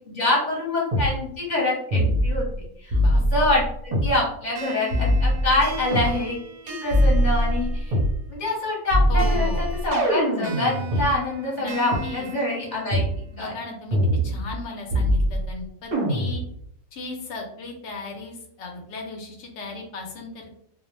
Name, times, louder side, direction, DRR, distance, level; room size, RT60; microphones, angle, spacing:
voice 1, 0.1-2.5 2.8-6.4 6.6-8.0 8.3-13.0 13.4-13.5, left 2 dB, 35° left, -5 dB, 0.9 m, -25 dB
sound 1, 0.9-1.1 1.9-2.6 2.9-4.1 4.9-6.1 6.9-8.1 8.9-11.1 11.9-12.0 12.9-13.1 13.9-14.6 14.9-15.5 15.9-16.5, equal, 45° right, 0.6 m, -22 dB
sound 2, 4.6-8.2 9.2-13.2, right 3 dB, 90° right, 1.1 m, -38 dB
voice 2, 9.1-9.6 11.6-11.7 12.0-12.3 13.3-14.0 14.2-16.4 16.9-20.6, left 3 dB, 65° left, 2 dB, 0.8 m, -36 dB
2.4 x 2.0 x 3.0 m, 0.69 s
omnidirectional pair, 1.4 m